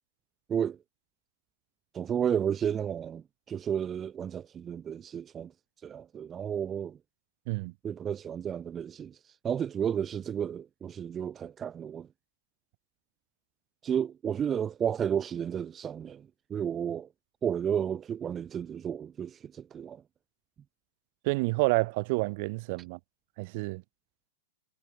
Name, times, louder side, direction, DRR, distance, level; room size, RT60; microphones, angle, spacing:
voice 1, 1.9-5.5 5.8-7.0 7.8-12.1 13.8-17.1 17.4-20.0 22.8-22.9, right 8 dB, 25° right, 0.5 m, -32 dB
voice 2, 21.2-23.0 23.4-23.8, right 26 dB, 50° right, 1.2 m, -29 dB
hypercardioid pair, 105°, 0 cm